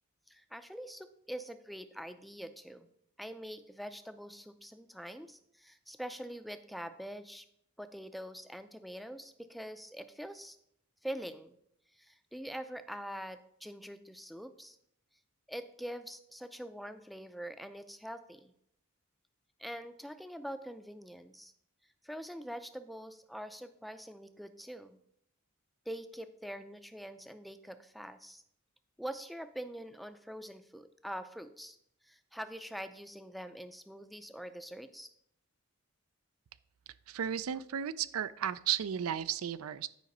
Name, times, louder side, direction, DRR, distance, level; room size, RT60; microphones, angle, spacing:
voice 1, 0.3-2.9 3.2-7.5 7.8-10.6 11.0-11.5 11.9-14.8 15.5-18.5 19.6-21.5 22.0-25.0 25.9-28.4 29.0-31.8 32.0-35.1, equal, ahead, 9 dB, 0.4 m, -44 dB
voice 2, 37.1-39.9, right 9 dB, 90° right, 16 dB, 0.4 m, -34 dB
9.3 x 4.9 x 5.3 m, 0.72 s
head